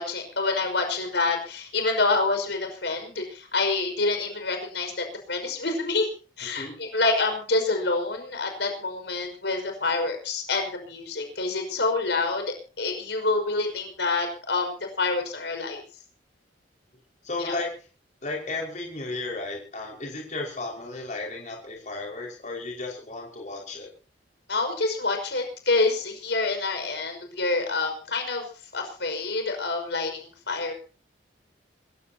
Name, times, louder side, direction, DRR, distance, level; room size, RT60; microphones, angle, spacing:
voice 1, 0.0-6.1 6.4-15.8 17.4-17.6 24.5-30.7, left 3 dB, 70° left, 5 dB, 5.6 m, -27 dB
voice 2, 6.6-6.9 17.2-17.7 18.2-23.9, left 2 dB, 40° left, 0 dB, 5.3 m, -34 dB
27.0 x 15.5 x 2.9 m, 0.38 s
head